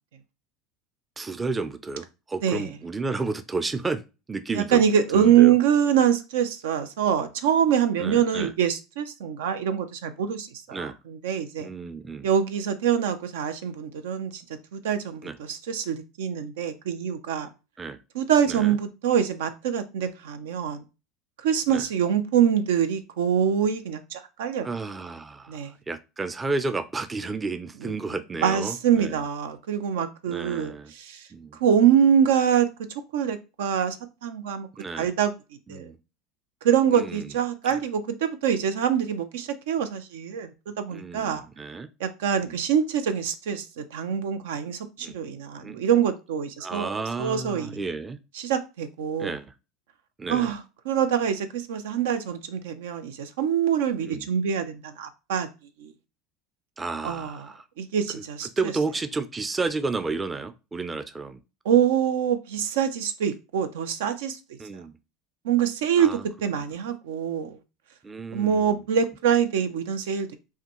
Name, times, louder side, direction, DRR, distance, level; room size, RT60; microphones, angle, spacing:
voice 1, 1.2-4.0 4.3-4.8 5.1-5.6 8.0-8.5 10.7-11.0 11.6-12.3 15.2-15.4 17.8-18.0 18.5-18.8 21.7-21.9 24.6-29.2 30.3-30.9 31.3-31.6 34.8-35.1 35.7-36.0 36.9-37.3 37.7-37.8 40.9-41.9 42.4-42.6 45.0-45.2 45.6-45.8 46.6-48.2 49.2-49.5 50.2-50.5 54.0-54.3 56.8-57.6 58.1-61.4 64.6-65.0 66.0-66.2 68.0-68.7, right 3 dB, 20° right, 0.4 m, -32 dB
voice 2, 4.5-11.7 12.2-14.4 14.7-17.5 18.1-20.8 21.4-24.7 25.5-25.7 27.8-27.9 28.4-32.7 33.1-34.0 34.2-34.7 35.0-35.3 35.7-35.9 36.6-41.5 42.0-46.9 47.2-47.8 48.4-49.3 50.3-50.6 50.8-55.5 55.8-55.9 57.0-57.4 57.8-58.7 61.6-64.4 65.4-67.6 68.3-70.4, right 8 dB, 85° right, 0.6 m, -24 dB
5.6 x 2.2 x 3.0 m
supercardioid pair, 110°, 0 cm